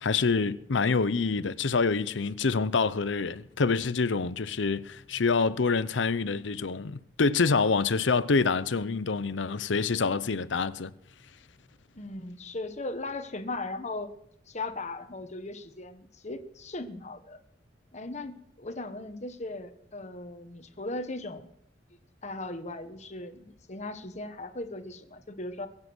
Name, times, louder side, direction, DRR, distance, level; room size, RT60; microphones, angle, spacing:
voice 1, 0.0-10.9, left 4 dB, 80° left, 0.7 m, -26 dB
voice 2, 11.9-14.1 14.5-17.4 17.9-21.5 22.2-25.7, left 2 dB, 40° left, 1.3 m, -38 dB
23.0 x 7.6 x 6.2 m
head